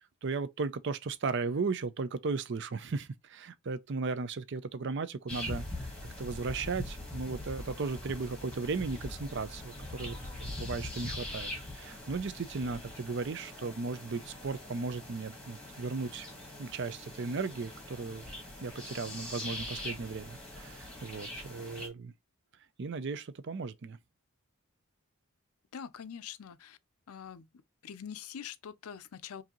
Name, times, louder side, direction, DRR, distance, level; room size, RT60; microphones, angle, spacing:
voice 1, 0.2-5.9 6.2-16.3 16.6-18.3 18.6-22.1 22.8-24.0, right 4 dB, 55° right, 0.5 m, -36 dB
sound 1, 5.3-21.9, left 1 dB, 5° left, 1.3 m, -42 dB
voice 2, 25.7-26.8 27.1-27.5 27.8-29.4, left 8 dB, 80° left, 0.5 m, -44 dB
4.7 x 2.7 x 2.9 m
head